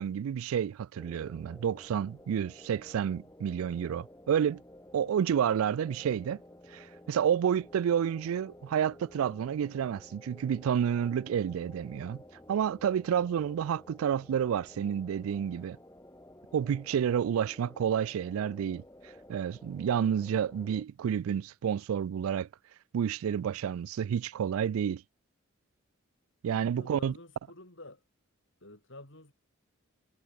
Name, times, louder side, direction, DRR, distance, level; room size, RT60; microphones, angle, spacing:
voice 1, 0.0-4.6 4.9-6.4 6.7-12.2 12.5-15.8 16.5-18.8 19.3-22.5 22.9-25.0 26.4-27.1, right 8 dB, 80° right, 0.3 m, -30 dB
sound 1, 0.9-20.8, left 1 dB, 15° left, 5.6 m, -53 dB
voice 2, 26.7-28.0 28.6-29.3, left 2 dB, 60° left, 6.0 m, -49 dB
head